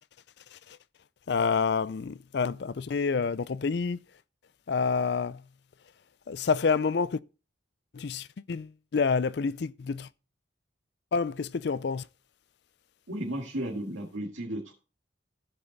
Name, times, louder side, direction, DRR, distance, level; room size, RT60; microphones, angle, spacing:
voice 1, 1.3-4.0 4.7-5.4 6.3-7.2 7.9-10.1 11.1-12.0, left 5 dB, 60° left, 0.4 m, -28 dB
voice 2, 13.1-14.7, right 1 dB, 85° right, 1.9 m, -34 dB
16.0 x 5.5 x 4.0 m
head